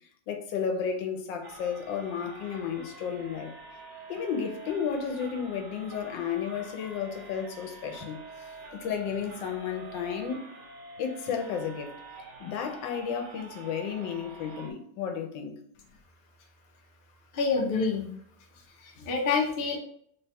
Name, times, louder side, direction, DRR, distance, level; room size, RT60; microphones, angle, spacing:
voice 1, 0.3-3.5 4.1-8.2 8.7-10.5 11.0-11.9 12.4-15.6, left 7 dB, 85° left, 1.3 m, -33 dB
sound 1, 1.4-14.7, right 3 dB, 65° right, 1.3 m, -47 dB
voice 2, 17.3-18.1 18.8-19.8, left 4 dB, 60° left, 0.6 m, -27 dB
3.4 x 2.3 x 4.1 m
omnidirectional pair, 2.0 m